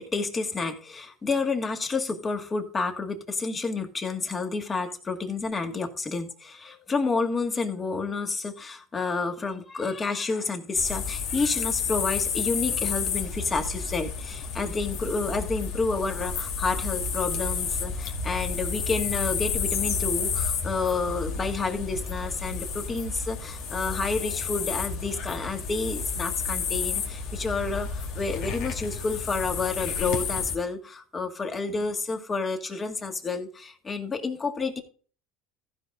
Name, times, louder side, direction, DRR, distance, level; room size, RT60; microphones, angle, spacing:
voice 1, 0.1-34.8, left 4 dB, 25° left, 2.1 m, -30 dB
sound 1, 10.7-30.5, left 5 dB, 65° left, 2.2 m, -31 dB
15.0 x 5.1 x 3.8 m
supercardioid pair, 105°, 0 cm